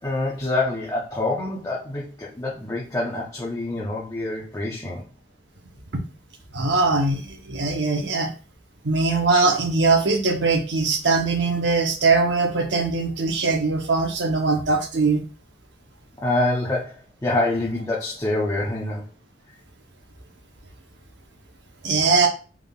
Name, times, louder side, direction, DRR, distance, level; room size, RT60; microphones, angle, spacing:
voice 1, 0.0-5.0 16.2-19.0, left 2 dB, 20° left, -5 dB, 0.6 m, -26 dB
voice 2, 6.5-8.3 8.8-15.2 21.8-22.3, right 3 dB, 80° right, 3 dB, 0.9 m, -21 dB
3.6 x 3.6 x 2.4 m, 0.37 s
head